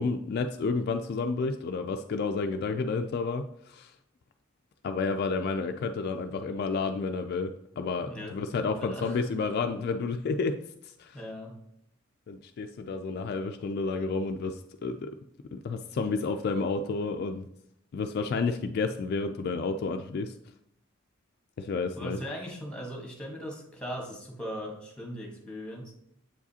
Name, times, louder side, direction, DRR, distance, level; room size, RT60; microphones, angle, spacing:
voice 1, 0.0-3.9 4.8-10.6 10.8-11.2 12.3-15.1 15.5-17.5 17.9-20.4 21.6-22.2, left 4 dB, 50° left, 6 dB, 0.3 m, -30 dB
voice 2, 8.0-9.2 11.1-11.5 21.9-25.9, equal, 5° left, 0 dB, 1.3 m, -39 dB
7.6 x 4.8 x 2.8 m, 0.76 s
head